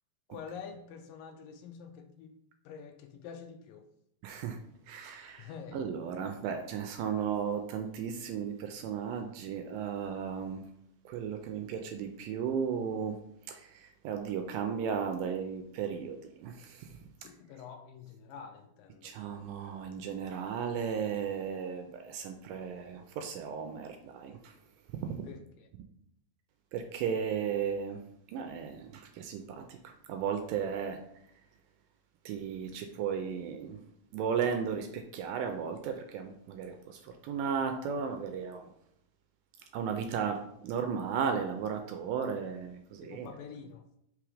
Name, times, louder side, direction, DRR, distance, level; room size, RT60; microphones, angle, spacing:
voice 1, 0.3-2.4 2.6-3.9 5.4-5.8 17.2-19.1 25.2-25.7 43.0-43.8, left 6 dB, 80° left, 5 dB, 2.2 m, -47 dB
voice 2, 4.2-4.6 4.9-10.7 11.1-17.3 19.0-24.6 24.9-25.3 26.7-28.0 28.3-31.0 31.4-31.5 32.3-33.8 34.1-38.7 39.6-43.3, right 7 dB, 80° right, 5 dB, 2.0 m, -35 dB
5.9 x 3.3 x 4.9 m, 0.75 s
omnidirectional pair, 4.1 m